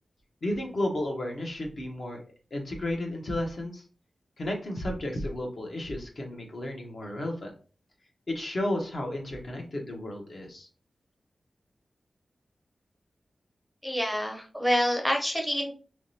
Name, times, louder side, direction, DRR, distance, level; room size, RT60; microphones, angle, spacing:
voice 1, 0.4-2.2 2.5-3.8 4.4-7.5 8.3-10.7, left 1 dB, 55° left, 1 dB, 0.9 m, -33 dB
voice 2, 13.8-15.7, equal, 5° left, 1 dB, 0.7 m, -27 dB
3.6 x 3.0 x 2.7 m, 0.38 s
wide cardioid pair, 115°, 0 cm